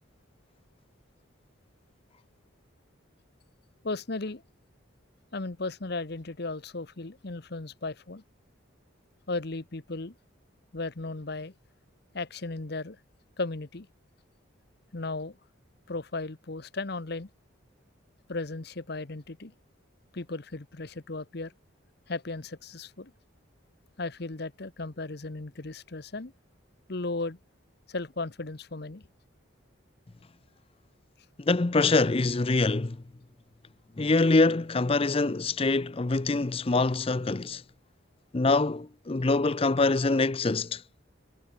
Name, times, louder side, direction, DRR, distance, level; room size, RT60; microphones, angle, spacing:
voice 1, 3.8-4.4 5.3-8.2 9.3-10.1 10.7-11.5 12.1-13.0 13.4-13.9 14.9-15.4 15.9-17.3 18.3-19.5 20.1-21.5 22.1-23.1 24.0-26.3 26.9-27.4 27.9-29.1, left 3 dB, 55° left, 1.1 m, -35 dB
voice 2, 31.4-33.0 34.0-37.6 38.3-40.8, left 3 dB, 30° left, 0.5 m, -24 dB
head